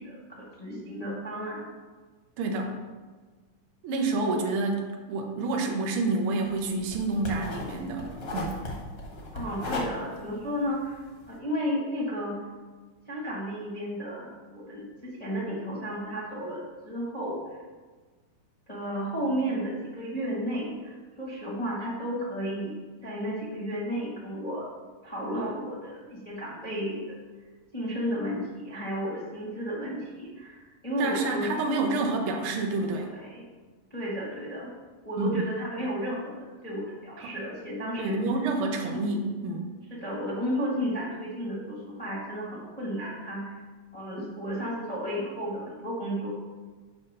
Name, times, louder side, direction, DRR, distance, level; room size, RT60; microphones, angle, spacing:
voice 1, 0.0-1.7 9.3-12.4 13.1-17.6 18.7-22.7 23.0-24.6 25.0-27.2 27.7-31.5 33.1-33.4 33.9-34.7 35.0-38.2 39.9-43.5 43.9-46.3, equal, 25° left, -7 dB, 0.7 m, -33 dB
voice 2, 2.4-2.8 3.8-8.6 31.0-33.1 35.2-35.4 37.2-37.3 38.0-39.7, right 3 dB, 85° right, 2 dB, 1.2 m, -28 dB
sound 1, 6.4-11.3, left 2 dB, 50° left, 1.0 m, -37 dB
7.2 x 4.4 x 6.6 m, 1.4 s
omnidirectional pair, 3.9 m